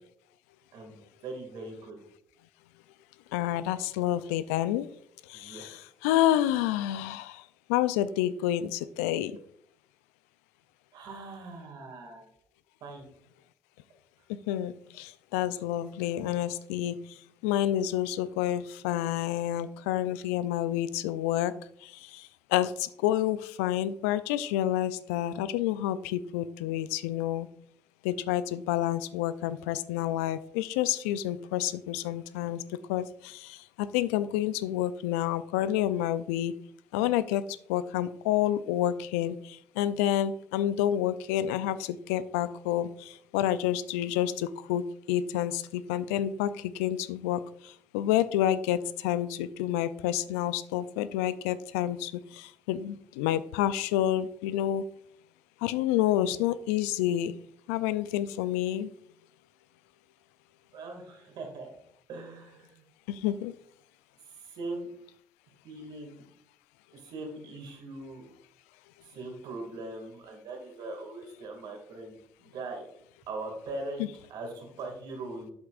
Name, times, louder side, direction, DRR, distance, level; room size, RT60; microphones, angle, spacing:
voice 1, 0.7-2.0 5.3-5.6 10.9-12.3 12.8-13.1 60.7-61.7 62.1-62.8 64.3-64.9 65.6-66.3 66.9-68.3 69.0-72.8 73.3-75.5, right 2 dB, 65° right, 3 dB, 2.2 m, -41 dB
voice 2, 3.3-4.9 5.3-7.4 7.7-9.3 14.5-16.9 17.4-21.5 21.8-22.2 22.5-27.5 28.0-32.6 32.9-36.5 36.9-37.4 37.7-47.4 47.9-54.8 55.6-57.3 57.7-58.9 63.1-63.5, left 12 dB, 85° left, 15 dB, 0.4 m, -29 dB
8.1 x 7.7 x 2.4 m, 0.67 s
hypercardioid pair, 55°, 8 cm